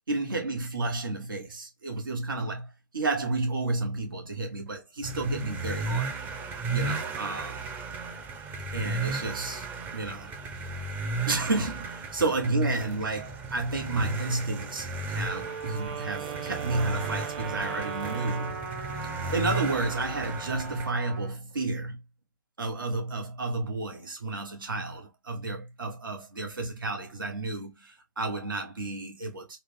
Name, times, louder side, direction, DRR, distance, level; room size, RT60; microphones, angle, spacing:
voice 1, 0.1-6.2 6.7-7.6 8.7-9.7 9.9-10.3 11.3-18.6 19.0-22.0 22.6-29.6, right 2 dB, 85° right, 1.8 m, -31 dB
sound 1, 5.0-20.9, right 3 dB, 15° right, 0.5 m, -35 dB
Wind instrument woodwind instrument, 15.2-18.7, right 8 dB, 30° right, 0.9 m, -38 dB
Trumpet, 16.7-21.4, right 3 dB, 60° right, 1.3 m, -39 dB
3.9 x 2.5 x 3.5 m
hypercardioid pair, 145°, 11 cm